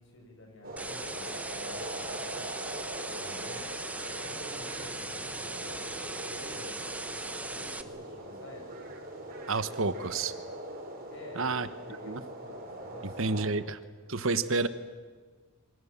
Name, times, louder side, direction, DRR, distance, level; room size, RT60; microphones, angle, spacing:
voice 1, 0.0-2.5 3.0-3.8 4.2-6.9 7.5-8.7 11.1-13.7 14.1-14.3, left 2 dB, 55° left, 1 dB, 7.9 m, -50 dB
sound 1, 0.6-13.4, right 1 dB, 40° right, 4.9 m, -42 dB
sound 2, 0.8-7.8, right 2 dB, 5° right, 1.0 m, -39 dB
voice 2, 9.5-10.3 11.3-11.7 12.1-12.2 13.2-13.8 14.1-14.7, right 3 dB, 60° right, 12 dB, 1.2 m, -29 dB
29.0 x 24.0 x 7.4 m, 1.5 s
head